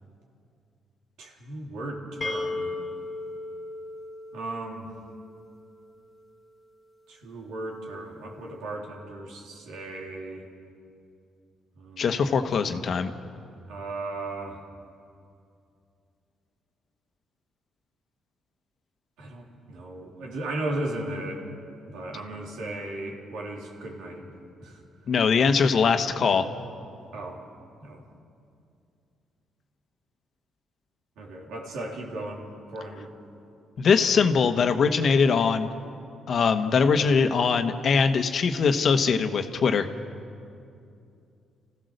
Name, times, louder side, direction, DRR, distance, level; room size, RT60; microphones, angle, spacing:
voice 1, 1.2-2.7 4.3-4.9 7.1-10.4 11.8-12.0 13.7-14.6 19.2-21.4 21.9-24.3 24.6-24.8 27.1-27.4 27.8-28.0 31.2-32.4 32.7-33.1, right 2 dB, 85° right, -1 dB, 3.7 m, -36 dB
sound 1, 2.2-5.9, left 2 dB, 25° left, 1.8 m, -36 dB
voice 2, 12.0-13.1 25.1-26.4 33.8-35.7 36.3-39.9, left 5 dB, 55° left, 7 dB, 1.3 m, -22 dB
28.0 x 15.5 x 6.7 m, 2.5 s
cardioid pair, 90°, 0 cm